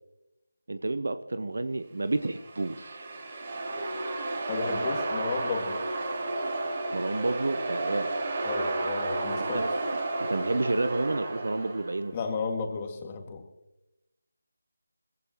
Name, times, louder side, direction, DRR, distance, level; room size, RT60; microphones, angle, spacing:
voice 1, 0.7-3.1 6.9-8.1 9.5-9.7 10.2-12.1, right 2 dB, 60° right, 11 dB, 0.9 m, -30 dB
sound 1, 2.2-12.0, right 2 dB, 35° right, 3.2 m, -32 dB
voice 2, 4.5-5.8 8.4-9.7 12.1-13.4, left 5 dB, 25° left, 3 dB, 2.1 m, -33 dB
20.0 x 15.5 x 3.1 m, 0.92 s
figure-of-eight pair, 160°, 0 cm